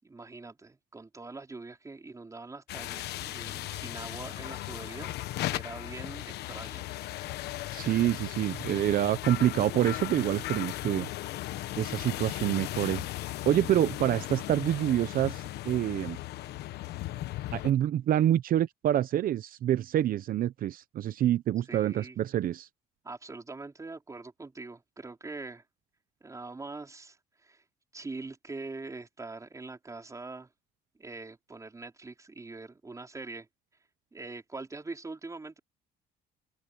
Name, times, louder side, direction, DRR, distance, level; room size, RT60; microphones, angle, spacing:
voice 1, 0.0-5.2 5.5-6.9 21.7-22.2 23.0-25.6 26.2-27.2 27.4-27.6 27.9-30.5 31.0-33.5 34.1-35.6, right 3 dB, 20° right, 5.0 m, -43 dB
sound 1, 2.7-17.7, left 15 dB, 75° left, 1.1 m, -37 dB
voice 2, 7.7-11.1 11.8-13.0 13.5-16.2 17.5-22.7, right 12 dB, 60° right, 0.9 m, -27 dB
open air
cardioid pair, 110°, 17 cm